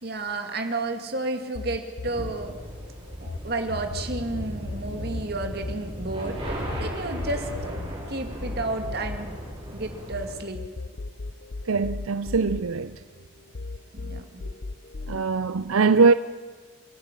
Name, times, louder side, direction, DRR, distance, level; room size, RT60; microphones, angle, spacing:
voice 1, 0.0-2.6 3.2-7.5 8.1-9.3 9.7-10.6 14.0-14.4, right 2 dB, 50° right, 2.2 m, -31 dB
sound 1, 1.6-3.4 3.7-10.2 10.6-13.2 13.6-15.2, left 3 dB, 50° left, 0.6 m, -36 dB
sound 2, 2.0-10.4, equal, 25° right, 5.9 m, -36 dB
voice 2, 11.7-13.0 15.1-16.1, right 4 dB, 85° right, 0.6 m, -21 dB
27.5 x 12.0 x 9.9 m
head